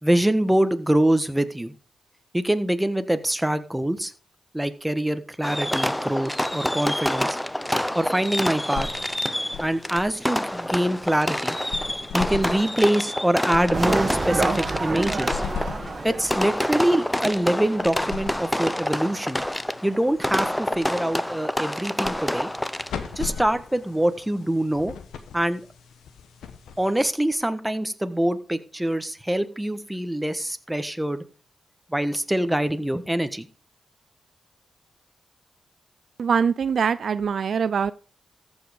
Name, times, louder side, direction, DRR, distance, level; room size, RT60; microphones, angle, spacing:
voice 1, 0.0-1.7 2.3-4.1 4.5-7.4 7.9-8.9 9.6-11.6 12.1-15.4 16.0-19.4 19.8-22.5 23.2-24.9 25.3-25.6 26.8-31.2 31.9-33.5, right 1 dB, 10° right, 1.3 m, -24 dB
Fireworks, 5.4-23.2, left 1 dB, 10° left, 0.7 m, -28 dB
sound 1, 8.4-27.3, left 7 dB, 85° left, 1.0 m, -40 dB
sound 2, 13.7-17.6 17.9-18.0, right 3 dB, 45° right, 1.6 m, -29 dB
voice 2, 36.2-37.9, right 6 dB, 70° right, 0.4 m, -23 dB
14.0 x 5.4 x 5.1 m
supercardioid pair, 40°, 0 cm